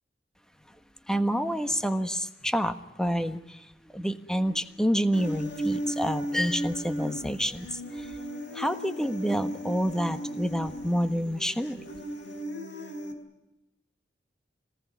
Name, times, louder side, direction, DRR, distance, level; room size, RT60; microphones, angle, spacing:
voice 1, 1.1-3.5 3.9-7.7 8.5-11.8, equal, 5° left, 9 dB, 1.3 m, -28 dB
Human voice, 5.1-13.1, right 1 dB, 80° left, 4.4 m, -35 dB
25.5 x 19.0 x 9.4 m, 0.96 s
head